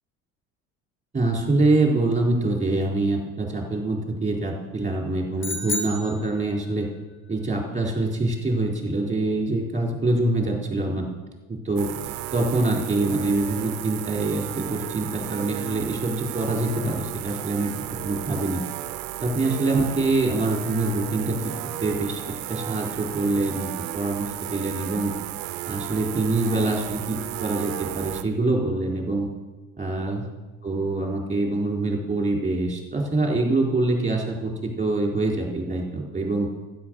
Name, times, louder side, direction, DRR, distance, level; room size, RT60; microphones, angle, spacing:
voice 1, 1.1-6.9 7.3-11.1 11.5-11.9 12.3-17.7 18.0-18.6 19.2-21.4 21.8-25.2 25.7-29.3 29.8-30.2 30.6-36.5, right 2 dB, 20° right, -1 dB, 4.3 m, -25 dB
sound 1, 5.4-6.9, left 2 dB, 30° left, 1.8 m, -31 dB
sound 2, 11.8-28.2, right 15 dB, 80° right, 0.8 m, -34 dB
12.0 x 10.0 x 6.4 m, 1.2 s
hypercardioid pair, 65°, 38 cm